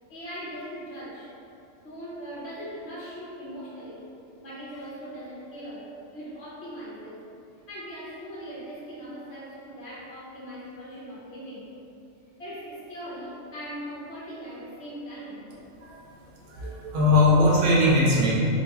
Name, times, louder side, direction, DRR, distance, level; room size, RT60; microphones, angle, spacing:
voice 1, 0.1-1.3 1.8-4.1 4.4-7.2 7.7-11.7 12.4-15.5 16.5-16.9, equal, 60° left, -8 dB, 1.0 m, -40 dB
voice 2, 16.5-18.4, left 2 dB, 75° right, -4 dB, 0.9 m, -20 dB
3.9 x 2.2 x 2.9 m, 2.7 s
omnidirectional pair, 1.3 m